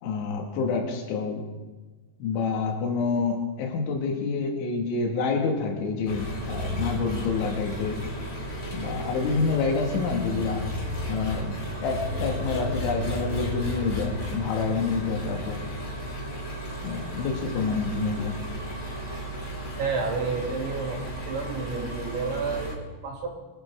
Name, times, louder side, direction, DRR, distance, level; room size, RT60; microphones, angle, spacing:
voice 1, 0.0-1.5 2.2-8.0 8.7-10.6 11.1-15.6 16.8-18.4, left 4 dB, 80° left, 1 dB, 4.3 m, -28 dB
Engine, 6.1-22.8, equal, 35° left, 3.1 m, -34 dB
voice 2, 19.8-21.0 21.3-23.3, right 4 dB, 75° right, -1 dB, 4.8 m, -30 dB
24.0 x 12.0 x 3.7 m, 1.3 s
omnidirectional pair, 5.4 m